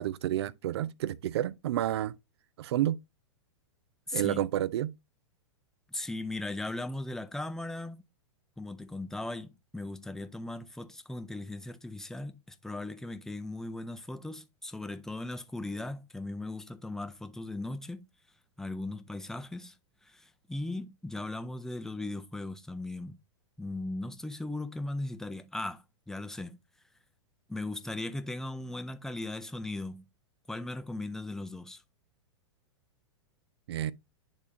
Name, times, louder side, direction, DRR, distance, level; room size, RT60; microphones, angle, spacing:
voice 1, 0.0-2.1 2.6-3.0 4.1-4.9 33.7-33.9, right 12 dB, 60° right, 0.5 m, -30 dB
voice 2, 4.1-4.5 5.9-8.0 8.6-18.1 18.6-19.8 20.0-23.2 23.6-26.6 27.5-30.0 30.5-31.8, left 2 dB, 5° left, 0.6 m, -38 dB
10.5 x 3.5 x 2.8 m
figure-of-eight pair, 105°, 16 cm